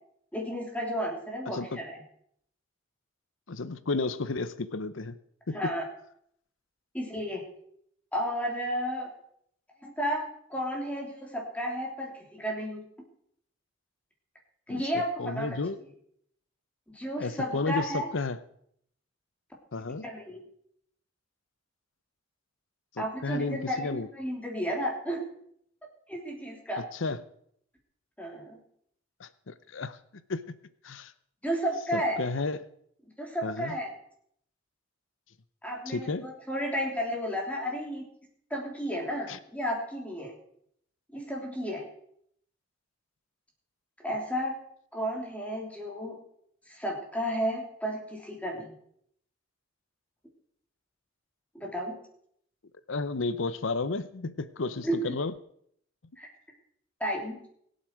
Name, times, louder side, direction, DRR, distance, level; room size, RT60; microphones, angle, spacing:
voice 1, 0.3-2.0 5.5-5.8 6.9-7.4 8.1-9.1 9.8-12.8 14.7-15.9 16.9-18.1 20.0-20.4 23.0-25.2 26.1-26.8 28.2-28.6 31.4-32.2 33.2-33.9 35.6-38.0 38.5-40.3 41.1-41.8 44.0-44.5 44.9-46.2 46.7-48.7 51.5-52.0 54.8-55.1 56.2-56.3 57.0-57.4, equal, 5° left, -1 dB, 3.3 m, -32 dB
voice 2, 3.5-5.2 5.5-5.7 14.7-14.8 15.2-15.8 17.2-18.4 19.7-20.1 23.0-24.1 26.8-27.2 29.2-30.0 30.3-30.4 30.8-31.1 31.9-32.6 33.4-33.8 35.9-36.3 39.3-39.4 52.9-55.3, left 3 dB, 70° left, 14 dB, 0.8 m, -32 dB
23.0 x 8.2 x 4.8 m, 0.69 s
head